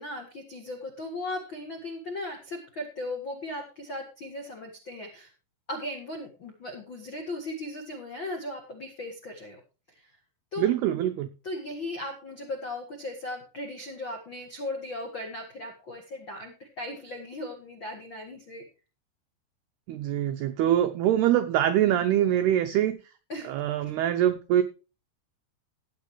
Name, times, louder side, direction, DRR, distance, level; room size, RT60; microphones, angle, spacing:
voice 1, 0.0-5.3 5.7-9.6 9.9-10.1 10.5-10.7 11.4-18.6 23.3-23.5, left 1 dB, 80° left, 3 dB, 1.0 m, -37 dB
voice 2, 10.6-11.3 19.9-23.0 23.4-24.6, right 11 dB, 90° right, 9 dB, 2.2 m, -24 dB
17.0 x 8.7 x 3.2 m, 0.33 s
omnidirectional pair, 5.7 m